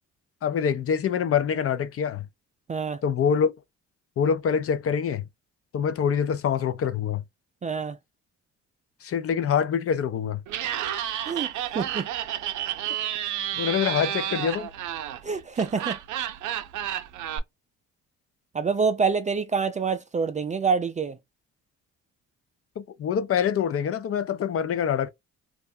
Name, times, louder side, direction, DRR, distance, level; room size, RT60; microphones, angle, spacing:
voice 1, 0.4-2.3 3.0-3.5 4.2-5.2 5.7-7.2 9.0-10.4 13.5-14.7 22.8-25.1, left 7 dB, 50° left, 0.5 m, -25 dB
voice 2, 2.7-3.0 7.6-8.0 11.2-12.1 15.2-16.0 18.5-21.2, right 5 dB, 25° right, 0.3 m, -26 dB
Laughter, 10.5-17.4, right 11 dB, 80° right, 0.5 m, -31 dB
2.4 x 2.1 x 2.7 m
cardioid pair, 90°, 30 cm